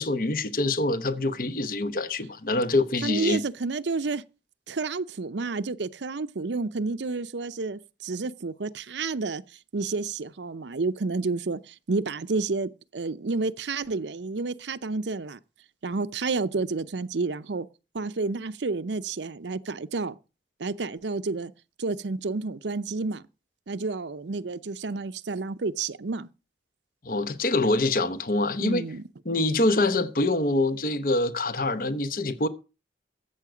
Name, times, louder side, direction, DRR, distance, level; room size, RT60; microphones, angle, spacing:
voice 1, 0.0-3.4 27.0-28.9 29.2-32.5, left 2 dB, 50° left, 0.9 m, -25 dB
voice 2, 3.0-4.2 4.7-9.4 9.7-15.4 15.8-17.7 17.9-20.2 20.6-21.5 21.8-23.2 23.7-26.3 28.6-29.0, right 3 dB, 80° right, 0.6 m, -30 dB
14.0 x 8.0 x 5.0 m
head